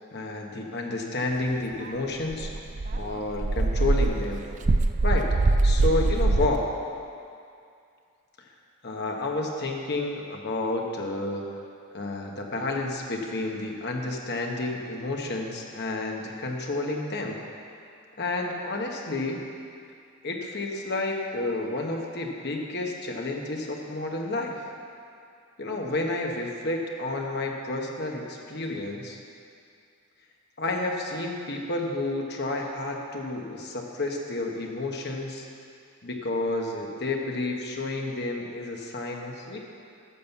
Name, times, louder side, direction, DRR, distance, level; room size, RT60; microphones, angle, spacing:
voice 1, 0.1-2.5 2.9-4.4 5.0-5.3 5.6-6.6 8.4-8.5 8.8-11.5 11.9-17.4 18.2-19.4 20.2-24.7 25.6-29.2 30.6-35.4 36.0-39.6, left 2 dB, 50° left, 1 dB, 1.2 m, -30 dB
Dog, 1.9-2.0 2.3-6.5, right 2 dB, 35° right, 0.4 m, -23 dB
11.0 x 6.3 x 7.1 m, 2.4 s
head